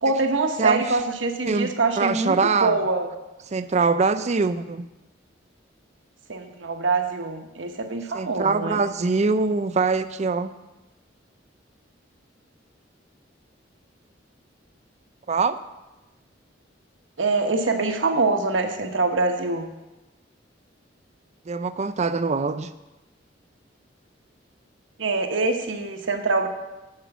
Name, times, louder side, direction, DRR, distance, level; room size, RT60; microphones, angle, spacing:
voice 1, 0.0-3.1 6.3-8.8 17.2-19.7 25.0-26.5, right 3 dB, 90° right, 4 dB, 1.1 m, -24 dB
voice 2, 2.0-2.8 3.5-4.9 8.1-10.5 15.3-15.6 21.5-22.7, right 4 dB, 40° right, 12 dB, 0.5 m, -23 dB
10.5 x 5.1 x 7.1 m, 1.0 s
head